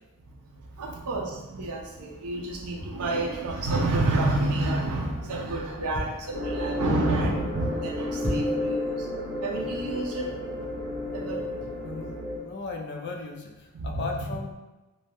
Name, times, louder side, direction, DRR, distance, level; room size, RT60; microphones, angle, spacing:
voice 1, 0.2-10.6 11.1-11.7 13.7-14.3, right 2 dB, 80° right, 0 dB, 0.5 m, -29 dB
sound 1, 5.9-6.4 6.9-7.1 7.4-7.5 8.0-8.7 9.1-9.2, equal, 25° left, 0.9 m, -34 dB
sound 2, 6.3-12.4, left 1 dB, 50° right, 1.0 m, -31 dB
voice 2, 11.8-12.2 12.4-14.5, left 3 dB, 50° left, 2 dB, 0.4 m, -36 dB
2.6 x 2.2 x 3.2 m, 1.1 s
head